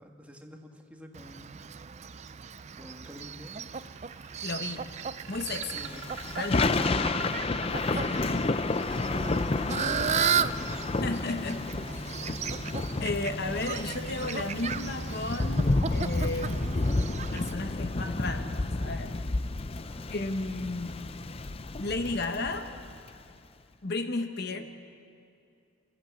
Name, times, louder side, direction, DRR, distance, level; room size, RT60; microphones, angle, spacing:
voice 1, 0.0-1.6 2.7-3.7 5.6-6.0 6.5-7.7 8.2-11.0 12.1-12.4 16.8-17.2 19.8-20.6 24.5-24.6, equal, 5° right, 2 dB, 1.7 m, -48 dB
Fowl, 1.1-17.5, right 7 dB, 35° right, 0.4 m, -35 dB
sound 1, 3.7-8.6, right 7 dB, 70° right, 2.4 m, -45 dB
voice 2, 4.4-4.9 5.3-5.8 6.4-6.9 7.9-8.5 11.0-11.7 13.0-16.9 17.3-19.2 20.1-21.2 21.8-22.7 23.8-24.6, left 2 dB, 50° left, 7 dB, 1.0 m, -34 dB
Thunder / Rain, 5.6-23.1, left 2 dB, 30° left, 0.5 m, -31 dB
27.5 x 14.5 x 8.3 m, 2.5 s
head